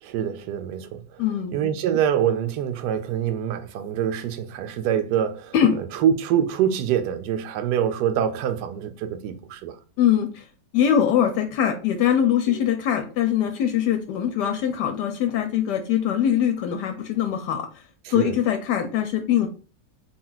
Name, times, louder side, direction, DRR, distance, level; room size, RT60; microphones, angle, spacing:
voice 1, 0.0-1.2 1.5-5.5 5.9-9.8 12.5-12.7 18.0-18.4, right 9 dB, 75° right, 1.1 m, -25 dB
voice 2, 1.2-1.7 5.5-5.8 10.0-10.4 10.7-17.8 18.1-19.5, left 9 dB, 75° left, 1.2 m, -22 dB
3.9 x 2.3 x 3.8 m
omnidirectional pair, 1.9 m